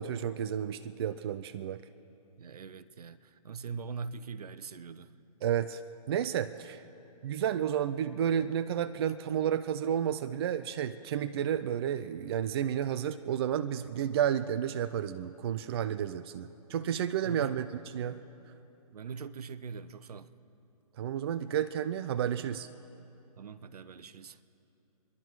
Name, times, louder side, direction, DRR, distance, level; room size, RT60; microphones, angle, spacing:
voice 1, 0.0-1.8 5.4-5.8 6.1-6.8 7.2-18.2 21.0-22.7, right 9 dB, 40° right, 0.4 m, -31 dB
voice 2, 2.4-5.1 17.2-17.7 18.9-20.3 23.4-24.4, right 5 dB, 75° right, 0.8 m, -42 dB
27.0 x 11.0 x 4.6 m
hypercardioid pair, 145°, 20 cm